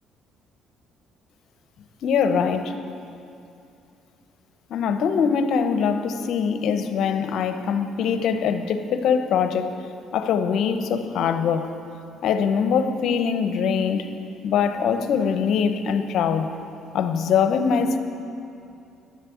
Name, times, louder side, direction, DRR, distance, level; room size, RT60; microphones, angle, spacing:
voice 1, 2.0-2.8 4.7-9.7 10.1-11.7 12.2-14.1 14.4-16.5 16.9-18.0, left 6 dB, 70° left, 8 dB, 0.8 m, -22 dB
10.5 x 7.5 x 8.4 m, 2.6 s
supercardioid pair, 80°, 0 cm